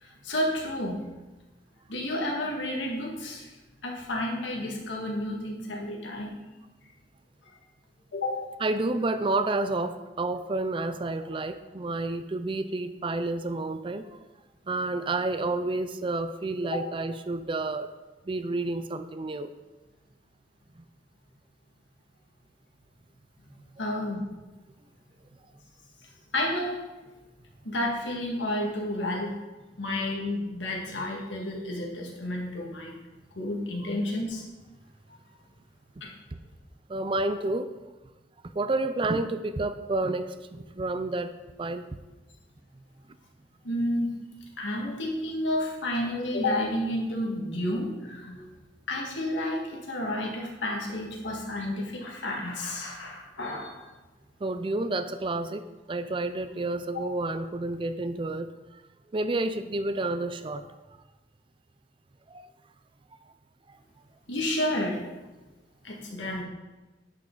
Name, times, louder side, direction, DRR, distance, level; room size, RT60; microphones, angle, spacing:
voice 1, 0.0-1.0 1.9-3.5 3.8-6.3 8.1-8.4 16.7-16.8 23.5-24.3 26.3-26.8 27.6-29.3 29.8-33.0 33.4-34.4 36.0-36.1 43.6-44.1 44.6-48.5 48.9-53.8 56.9-57.0 64.3-65.0 65.8-66.4, left 1 dB, 85° left, -1 dB, 1.8 m, -31 dB
voice 2, 8.6-14.2 14.7-17.9 18.3-19.5 36.9-37.7 38.5-41.3 41.6-41.9 54.4-55.6 55.9-58.8 59.1-60.7 62.3-62.5 63.7-63.8, right 2 dB, 30° right, 11 dB, 0.4 m, -30 dB
11.0 x 5.7 x 3.9 m, 1.1 s
head